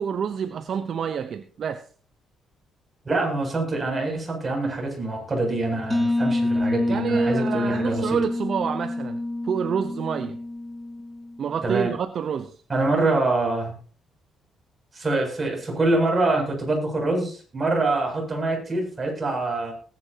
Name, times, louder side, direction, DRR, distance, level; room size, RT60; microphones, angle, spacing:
voice 1, 0.0-1.9 6.9-10.4 11.4-12.6, right 7 dB, 60° right, 0.8 m, -28 dB
voice 2, 3.1-8.2 11.6-11.9 12.7-13.8 14.9-19.7, right 2 dB, 30° right, 7.5 m, -25 dB
sound 1, 5.9-11.5, left 2 dB, 15° left, 1.3 m, -27 dB
19.5 x 10.5 x 2.9 m
cardioid pair, 90°, 0 cm